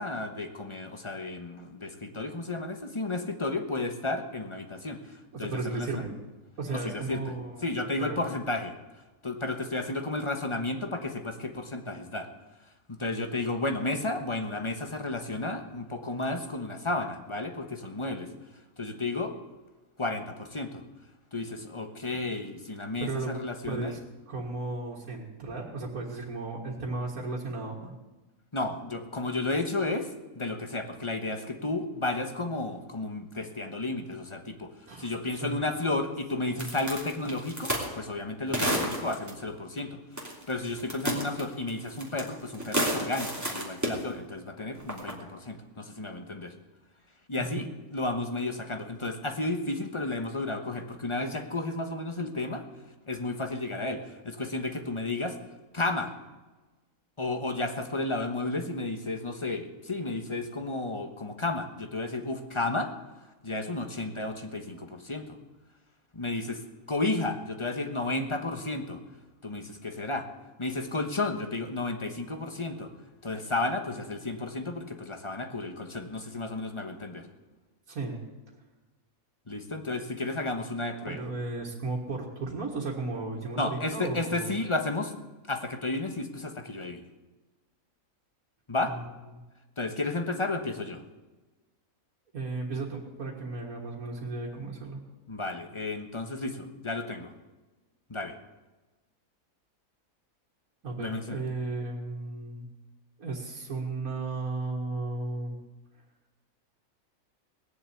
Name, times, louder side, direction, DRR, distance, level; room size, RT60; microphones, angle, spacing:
voice 1, 0.0-5.0 5.4-6.0 6.7-7.3 7.6-8.8 9.2-12.3 13.0-18.3 18.8-19.4 20.0-20.8 21.3-24.0 28.5-30.1 30.3-34.7 35.0-40.0 40.5-46.5 47.3-52.6 53.1-55.4 55.7-56.1 57.2-62.9 63.4-65.4 66.1-66.6 66.9-69.0 69.4-70.3 70.6-72.9 73.2-77.3 79.5-81.2 83.6-85.1 85.5-87.0 88.7-88.9 89.8-91.0 95.3-97.3 98.1-98.4 101.0-101.4, left 2 dB, 20° left, 5 dB, 1.2 m, -32 dB
voice 2, 5.3-6.1 6.6-7.7 8.0-8.3 23.0-23.3 23.6-24.0 24.3-28.0 34.9-35.1 35.4-35.6 36.0-36.1 36.4-36.7 47.4-47.7 77.9-78.2 81.1-84.5 88.9-89.0 89.3-89.4 92.3-95.0 100.8-102.7 103.2-105.5, right 3 dB, 85° right, -4 dB, 2.3 m, -35 dB
sound 1, 36.6-37.9 38.5-39.3 40.2-40.5 40.8-42.3 42.5-44.0 44.8-45.1, right 1 dB, 10° right, 3.1 m, -30 dB
19.0 x 7.2 x 8.4 m, 1.2 s
omnidirectional pair, 1.5 m